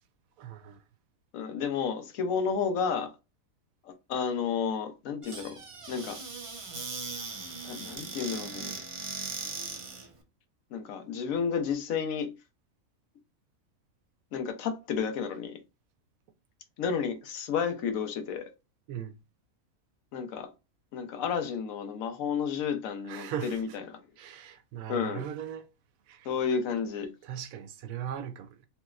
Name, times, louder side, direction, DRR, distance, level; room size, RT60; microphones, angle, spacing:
voice 1, 0.4-0.8 18.9-19.1 23.0-23.6 24.2-25.7 26.1-26.3 27.2-28.5, right 9 dB, 90° right, 1.0 m, -38 dB
voice 2, 1.3-3.1 3.8-5.6 5.9-6.2 7.6-8.7 10.7-12.3 14.3-15.6 16.8-18.5 20.1-20.5 20.9-24.0 24.9-25.2 26.2-27.1, left 6 dB, 80° left, 1.1 m, -31 dB
Squeak / Cupboard open or close, 5.2-10.1, right 4 dB, 45° right, 0.4 m, -39 dB
3.2 x 3.0 x 2.3 m
omnidirectional pair, 1.4 m